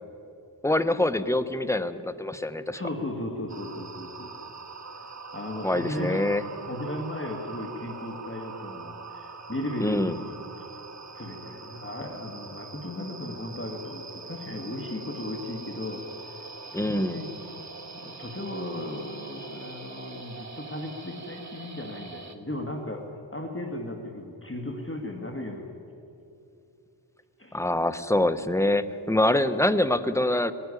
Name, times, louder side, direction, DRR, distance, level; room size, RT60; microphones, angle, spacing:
voice 1, 0.6-2.8 5.6-6.4 9.8-10.2 16.7-17.2 27.5-30.5, left 1 dB, 5° left, 11 dB, 1.0 m, -25 dB
voice 2, 2.7-4.3 5.0-6.3 6.7-10.7 11.1-16.1 16.7-17.3 17.9-25.8 27.4-27.6, left 1 dB, 25° left, 2 dB, 1.9 m, -36 dB
sound 1, 3.5-22.4, right 4 dB, 35° right, 1.5 m, -43 dB
20.0 x 15.5 x 9.8 m, 2.8 s
wide cardioid pair, 50°, 46 cm